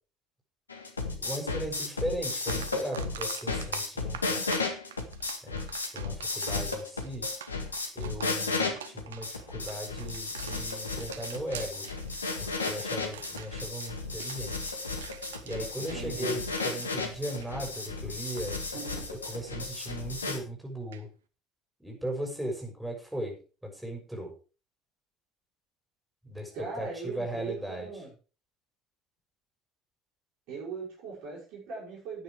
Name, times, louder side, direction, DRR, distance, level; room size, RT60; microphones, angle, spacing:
sound 1, 0.7-20.4, left 3 dB, 85° left, 1.7 m, -34 dB
voice 1, 1.2-4.5 5.4-5.6 5.9-7.3 7.9-11.9 12.4-14.7 15.4-18.6 19.3-21.1 21.8-23.4 23.6-24.3 26.2-26.5 26.8-27.9, right 1 dB, 5° right, 0 dB, 6.7 m, -37 dB
sound 2, 1.8-1.9 2.3-17.9 18.2-18.5 20.9-21.0, right 9 dB, 75° right, 0.9 m, -46 dB
voice 2, 15.8-16.4 18.7-19.4 26.5-28.1 30.5-32.2, right 4 dB, 55° right, -4 dB, 6.0 m, -40 dB
13.0 x 9.3 x 4.8 m, 0.35 s
figure-of-eight pair, 60°, 0 cm